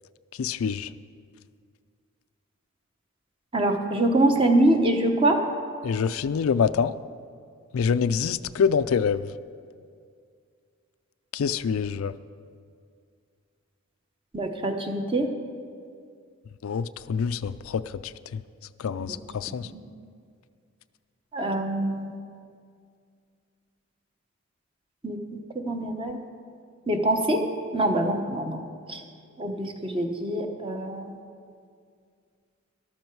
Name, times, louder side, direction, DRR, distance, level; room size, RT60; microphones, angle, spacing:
voice 1, 0.4-0.9 5.8-6.9 7.7-9.3 11.3-12.1 16.6-17.8 18.3-18.4 18.8-19.7, left 6 dB, 85° left, 13 dB, 0.4 m, -25 dB
voice 2, 3.5-5.4 14.3-15.3 19.1-19.2 19.7-19.8 21.3-22.2 25.0-25.2 25.7-26.2 26.9-27.4 27.7-28.6 28.9-29.0 29.4-31.1, right 1 dB, 25° right, 4 dB, 1.0 m, -24 dB
13.5 x 12.5 x 4.6 m, 2.2 s
head